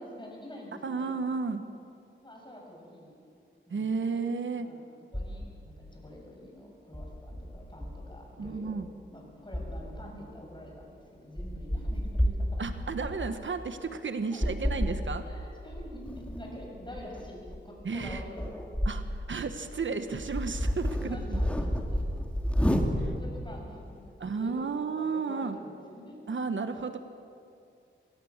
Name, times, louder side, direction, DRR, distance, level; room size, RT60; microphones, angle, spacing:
voice 1, 0.0-1.2 2.2-3.2 3.7-4.2 4.5-4.8 5.1-8.7 9.1-12.6 13.8-13.9 14.3-14.9 15.2-18.4 20.9-22.0 23.0-26.2, left 1 dB, 20° left, -1 dB, 7.4 m, -47 dB
voice 2, 0.8-1.6 3.7-4.7 8.4-8.9 12.6-15.2 17.8-18.2 18.9-21.4 23.0-23.1 24.2-25.6 26.3-27.0, right 4 dB, 70° right, 9 dB, 1.2 m, -33 dB
sound 1, 5.1-5.7 6.9-8.9 9.5-10.1 10.8-10.9 11.4-13.3 14.4-15.0 15.7-19.2 19.6-19.7 20.1-23.3, equal, 5° left, 2.5 m, -31 dB
25.0 x 17.5 x 7.3 m, 2.5 s
cardioid pair, 65°, 21 cm